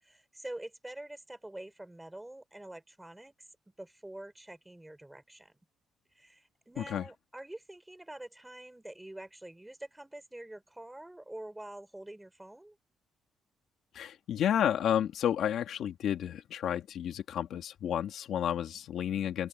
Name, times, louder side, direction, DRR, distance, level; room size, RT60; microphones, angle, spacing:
voice 1, 0.0-3.3 3.8-5.6 6.1-12.8, right 1 dB, 5° right, 4.8 m, -46 dB
voice 2, 13.9-19.5, left 10 dB, 60° left, 2.4 m, -31 dB
open air
cardioid pair, 160°, 0 cm